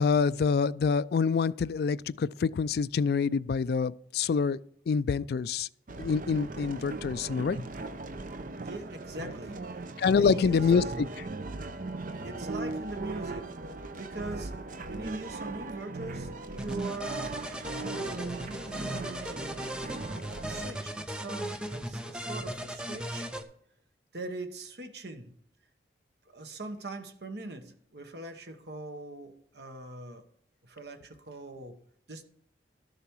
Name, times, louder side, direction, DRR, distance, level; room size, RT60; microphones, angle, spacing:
voice 1, 0.0-4.6 4.9-5.7 6.0-7.6 10.0-10.8, left 5 dB, 60° left, 0.3 m, -26 dB
sound 1, 5.9-20.7, right 3 dB, 45° right, 0.7 m, -38 dB
voice 2, 8.6-9.9 10.2-10.9 12.2-13.5 14.0-14.6 14.9-17.4 17.7-19.9 20.4-23.3 24.1-25.3 26.3-30.3 30.6-31.8 32.1-32.2, right 2 dB, 65° right, 1.2 m, -42 dB
sound 2, 16.6-23.4, equal, 5° right, 0.6 m, -37 dB
12.5 x 6.8 x 4.7 m
head